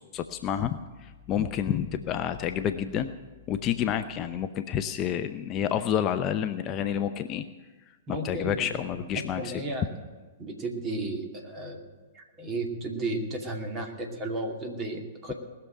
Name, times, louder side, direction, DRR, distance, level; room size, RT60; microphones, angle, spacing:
voice 1, 0.1-3.1 3.5-7.4 8.2-9.5, left 9 dB, 30° left, 9 dB, 0.7 m, -29 dB
voice 2, 8.1-8.8 9.1-9.9 10.4-15.3, right 2 dB, 25° right, 2 dB, 2.5 m, -34 dB
20.0 x 7.0 x 9.0 m, 1.3 s
figure-of-eight pair, 110°, 0 cm